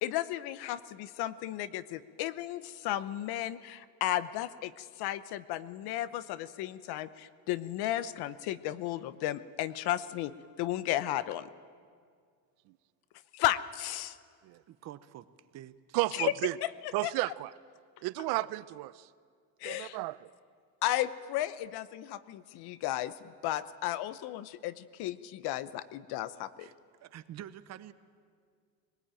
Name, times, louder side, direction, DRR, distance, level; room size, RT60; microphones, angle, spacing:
voice 1, 0.0-10.3 10.6-11.5 13.3-14.2 16.1-16.3 16.6-16.7 17.0-17.1 19.6-20.0 20.8-23.1 23.4-26.7, left 14 dB, 65° left, 15 dB, 0.9 m, -34 dB
voice 2, 14.7-15.2 15.5-16.0 26.6-26.7 27.0-27.9, right 12 dB, 40° right, 13 dB, 0.8 m, -47 dB
voice 3, 15.9-16.5 16.9-17.5 18.0-19.1 19.6-20.2, right 20 dB, 70° right, 18 dB, 0.6 m, -32 dB
22.5 x 20.0 x 9.0 m, 2.1 s
cardioid pair, 165°, 41 cm